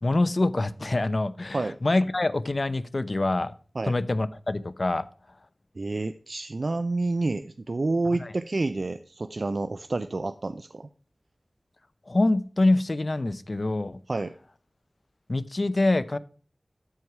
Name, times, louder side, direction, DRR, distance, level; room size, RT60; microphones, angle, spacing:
voice 1, 0.0-3.5 3.8-5.1 8.2-8.3 12.1-14.0 15.3-16.2, left 2 dB, 55° left, 14 dB, 0.7 m, -25 dB
voice 2, 5.8-10.9 14.1-14.3, right 2 dB, 70° right, 11 dB, 0.5 m, -29 dB
13.0 x 4.7 x 5.8 m, 0.41 s
wide cardioid pair, 45°, 0 cm